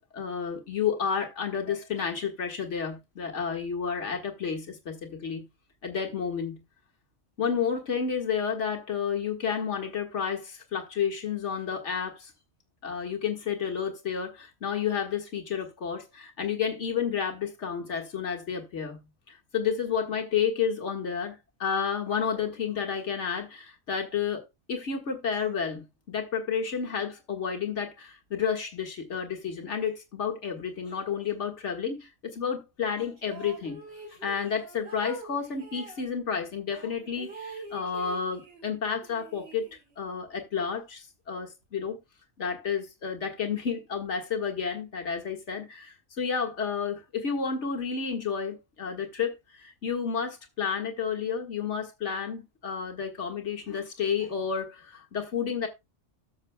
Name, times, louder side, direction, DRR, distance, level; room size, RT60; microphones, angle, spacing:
voice 1, 0.1-5.5 5.8-6.6 7.4-12.3 12.8-19.0 19.3-24.4 24.7-33.8 34.2-39.7 40.0-42.0 42.4-55.7, left 7 dB, 70° left, 2.0 m, -31 dB
sound 1, 33.2-36.0 36.7-38.7 39.0-40.1, right 2 dB, 55° right, 4.3 m, -45 dB
13.5 x 6.9 x 2.2 m
omnidirectional pair, 1.3 m